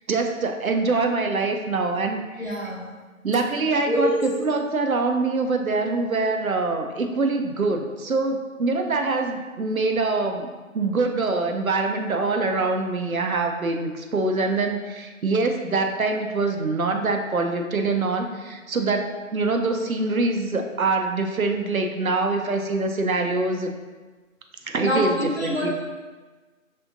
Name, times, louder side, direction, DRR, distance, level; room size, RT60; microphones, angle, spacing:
voice 1, 0.1-2.6 3.2-23.7 24.7-25.7, right 3 dB, 75° right, 4 dB, 0.7 m, -24 dB
voice 2, 2.4-2.9 3.9-4.2 24.8-25.7, equal, 50° left, -4 dB, 1.2 m, -25 dB
5.5 x 3.5 x 2.6 m, 1.3 s
figure-of-eight pair, 180°, 42 cm